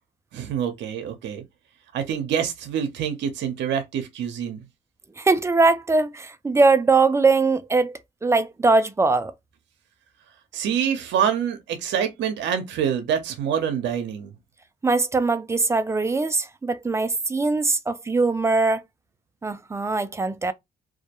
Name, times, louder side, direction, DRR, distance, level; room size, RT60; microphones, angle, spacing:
voice 1, 0.3-1.4 1.9-4.6 10.5-14.3, right 8 dB, 80° right, 0.6 m, -26 dB
voice 2, 5.2-9.3 14.8-18.8 19.4-20.5, right 3 dB, 15° right, 0.4 m, -21 dB
2.3 x 2.1 x 2.8 m
cardioid pair, 75°, 18 cm